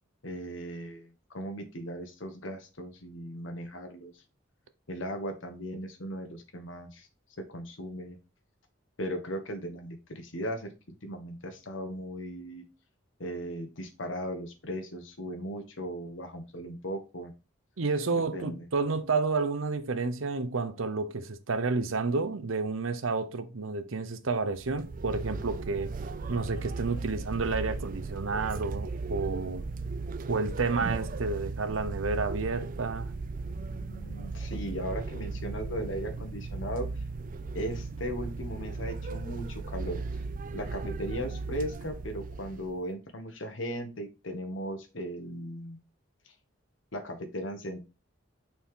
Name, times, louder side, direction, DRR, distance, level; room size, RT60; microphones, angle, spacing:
voice 1, 0.2-4.2 4.9-7.1 7.4-8.2 9.0-10.7 11.0-12.6 13.2-17.3 18.1-18.7 33.7-36.9 37.5-40.0 40.5-45.8 46.9-47.8, equal, 70° left, 1.4 m, -37 dB
voice 2, 17.8-25.9 26.3-29.6 30.3-33.1, right 4 dB, 90° right, 0.8 m, -30 dB
sound 1, 24.5-42.8, right 3 dB, 45° right, 0.5 m, -37 dB
6.2 x 4.4 x 3.7 m
head